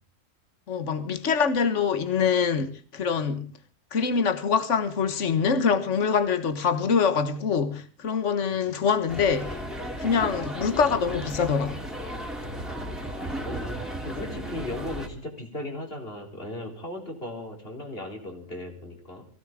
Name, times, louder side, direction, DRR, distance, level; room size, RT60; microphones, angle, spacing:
voice 1, 0.7-3.5 3.9-9.5 10.0-11.8, left 6 dB, 65° left, 1.7 m, -24 dB
voice 2, 8.5-8.9 13.1-19.3, left 1 dB, 45° left, 4.2 m, -37 dB
sound 1, 9.1-15.1, equal, ahead, 2.9 m, -34 dB
23.0 x 16.5 x 3.7 m
omnidirectional pair, 1.3 m